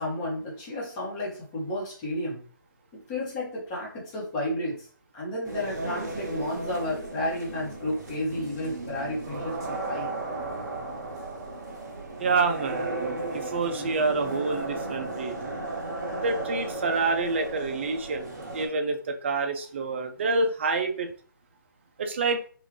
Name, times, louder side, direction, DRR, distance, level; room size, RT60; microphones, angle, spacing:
voice 1, 0.0-2.4 2.9-4.9 5.1-10.1, left 1 dB, 15° left, -5 dB, 1.1 m, -32 dB
sound 1, 5.4-18.7, right 2 dB, 50° right, 1.0 m, -35 dB
voice 2, 12.2-15.3 16.2-18.3 18.5-21.1 22.0-22.4, right 3 dB, 30° right, 6 dB, 0.4 m, -27 dB
3.6 x 2.5 x 3.1 m, 0.42 s
hypercardioid pair, 160°, 12 cm